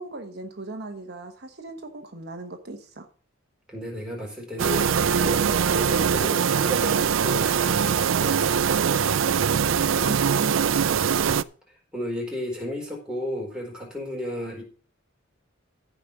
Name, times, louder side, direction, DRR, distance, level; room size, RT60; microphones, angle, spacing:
voice 1, 0.0-3.1 9.5-10.9, right 2 dB, 55° right, 1.2 m, -37 dB
voice 2, 3.7-8.6 10.8-11.4 11.9-14.6, left 1 dB, 5° right, 4.4 m, -34 dB
sound 1, 4.6-11.4, right 7 dB, 70° right, 0.5 m, -22 dB
15.0 x 5.2 x 6.0 m
head